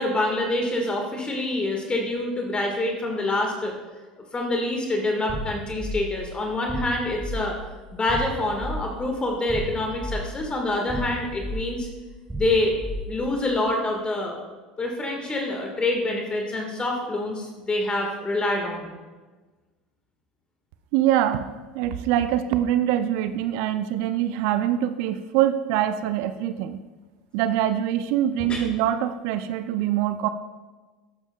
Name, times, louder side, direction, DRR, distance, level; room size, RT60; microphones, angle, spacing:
voice 1, 0.0-3.7 4.3-7.6 7.9-11.9 12.4-12.7 13.1-14.4 14.8-18.9 28.5-28.6, left 2 dB, 20° left, 1 dB, 1.5 m, -26 dB
sound 1, 5.3-13.5, equal, 10° right, 1.2 m, -34 dB
voice 2, 20.9-21.5 21.7-26.8 27.3-30.3, right 11 dB, 60° right, 11 dB, 0.4 m, -24 dB
12.5 x 8.8 x 2.3 m, 1.3 s
hypercardioid pair, 75°, 4 cm